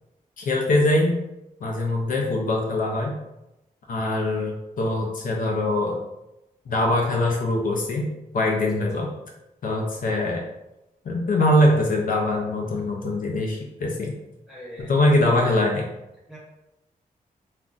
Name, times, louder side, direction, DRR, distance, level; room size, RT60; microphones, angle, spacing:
voice 1, 0.4-1.2 1.6-3.2 3.9-6.0 6.7-9.1 9.6-10.4 11.0-14.1 14.8-15.9, left 1 dB, 65° left, 0 dB, 0.5 m, -23 dB
voice 2, 14.5-14.9 16.3-16.4, equal, 5° right, -6 dB, 1.2 m, -41 dB
2.5 x 2.2 x 3.7 m, 0.94 s
wide cardioid pair, 125°, 15 cm